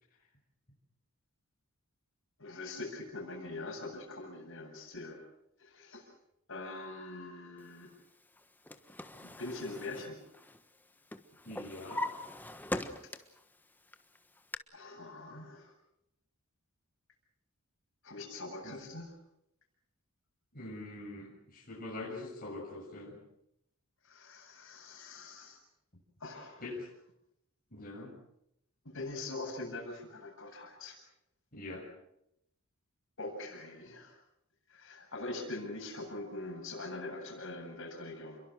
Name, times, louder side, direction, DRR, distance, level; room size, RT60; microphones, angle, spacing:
voice 1, 2.4-5.2 5.6-6.1 6.5-7.9 9.2-10.2 14.7-15.7 18.0-19.1 24.0-25.6 26.2-26.6 28.8-31.0 33.2-34.2 34.7-38.4, left 2 dB, 60° left, 2 dB, 7.9 m, -43 dB
Drawer open or close, 8.4-10.8 11.1-13.4 13.9-14.6, left 1 dB, 10° left, 1.3 m, -41 dB
voice 2, 11.4-12.1 18.6-18.8 20.5-23.1 26.6-26.9 27.7-28.1 31.5-31.9, left 2 dB, 40° left, -3 dB, 6.9 m, -43 dB
29.5 x 23.0 x 6.3 m, 0.80 s
head